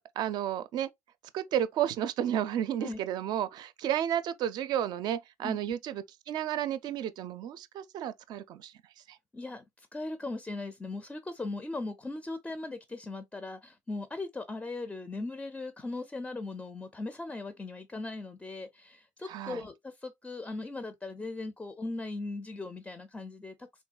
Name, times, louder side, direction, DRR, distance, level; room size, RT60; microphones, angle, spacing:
voice 1, 0.2-0.9 1.3-8.7 9.1-9.2 19.3-19.6, right 10 dB, 60° right, 0.4 m, -32 dB
voice 2, 9.3-23.8, left 2 dB, 15° left, 0.4 m, -39 dB
3.5 x 2.3 x 2.2 m
cardioid pair, 100°, 8 cm